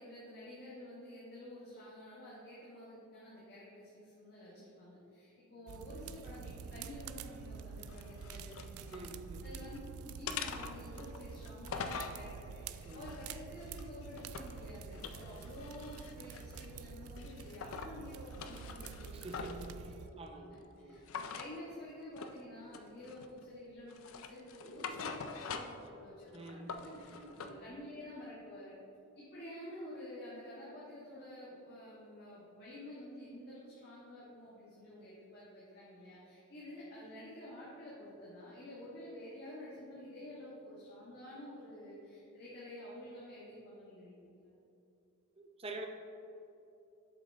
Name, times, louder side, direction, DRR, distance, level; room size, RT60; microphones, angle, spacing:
voice 1, 0.0-9.0 9.4-20.0 20.3-28.7 29.1-44.5, left 1 dB, 45° left, -9 dB, 1.4 m, -50 dB
sound 1, 5.7-20.1, right 6 dB, 85° right, 0.3 m, -48 dB
sound 2, 7.9-9.1 9.5-9.8 10.3-12.2 12.8-14.6 14.9-16.8 17.2-17.9 18.3-19.7 21.1-21.5 22.2-22.4 22.7-23.4 23.9-25.9 26.2-27.5, left 6 dB, 70° left, 0.4 m, -44 dB
voice 2, 8.9-10.1 12.8-13.2 19.1-21.1 26.3-27.6 45.4-45.9, right 2 dB, 25° right, 4 dB, 0.6 m, -48 dB
7.6 x 5.9 x 3.4 m, 2.8 s
head